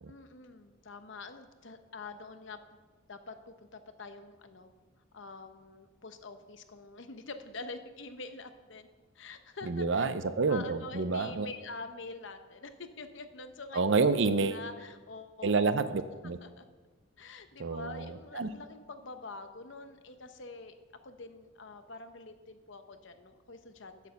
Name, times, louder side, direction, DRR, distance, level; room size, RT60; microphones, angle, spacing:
voice 1, 0.1-2.8 3.1-4.7 5.1-8.9 9.1-10.1 10.5-13.8 14.3-15.8 16.2-16.6 17.2-20.7 21.0-24.0, left 3 dB, 65° left, 8 dB, 0.8 m, -46 dB
voice 2, 9.7-11.5 13.7-14.6 15.4-16.4 17.6-18.0 18.3-18.5, right 4 dB, 60° right, 12 dB, 0.6 m, -28 dB
8.7 x 8.3 x 6.9 m, 1.4 s
head